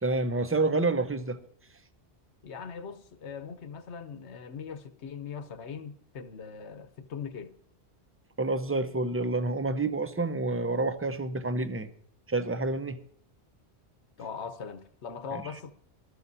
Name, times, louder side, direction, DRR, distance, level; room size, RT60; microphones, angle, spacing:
voice 1, 0.0-1.4 8.4-11.9 12.3-13.0 15.3-15.4, right 3 dB, 15° right, 0.6 m, -28 dB
voice 2, 2.4-7.6 14.2-15.7, left 6 dB, 80° left, 1.2 m, -40 dB
21.0 x 13.0 x 2.7 m
omnidirectional pair, 1.1 m